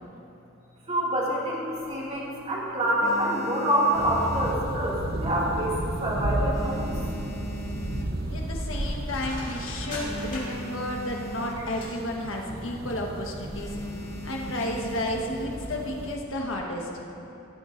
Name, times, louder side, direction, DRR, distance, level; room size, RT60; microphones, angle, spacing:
voice 1, 0.9-5.7 6.0-6.9, right 1 dB, 30° right, -5 dB, 2.3 m, -26 dB
sound 1, 1.7-2.4 2.8-5.3 5.6-6.0 6.3-8.5 9.0-9.1 9.3-9.4 9.7-11.9 12.2-12.5 12.8-13.1 13.5-15.3 16.1-16.6, equal, 15° left, 0.7 m, -40 dB
sound 2, 3.9-16.2, right 1 dB, 50° right, 0.9 m, -34 dB
sound 3, 5.9-13.0 13.3-13.4, left 1 dB, 40° left, 2.6 m, -43 dB
voice 2, 8.3-13.7 14.2-16.9, left 1 dB, 70° left, -1 dB, 1.4 m, -32 dB
17.0 x 13.0 x 2.6 m, 2.9 s
head